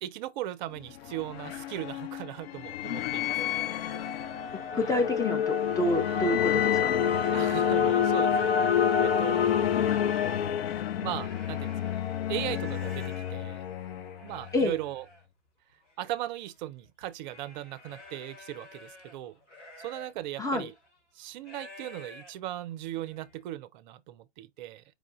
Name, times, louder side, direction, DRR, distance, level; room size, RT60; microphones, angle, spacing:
voice 1, 0.0-3.5 3.8-3.9 4.2-4.4 4.7-5.0 7.3-9.6 11.0-12.0 12.3-13.6 14.2-15.0 16.0-19.4 19.8-20.7 21.1-24.8, right 14 dB, 40° right, 0.6 m, -38 dB
sound 1, 0.8-14.5, left 9 dB, 55° left, 0.7 m, -28 dB
voice 2, 4.7-7.1 14.5-14.8 20.4-20.7, left 1 dB, 10° left, 0.7 m, -28 dB
sound 2, 11.0-23.4, left 1 dB, 75° left, 2.9 m, -51 dB
4.9 x 2.4 x 3.6 m
figure-of-eight pair, 95°, 36 cm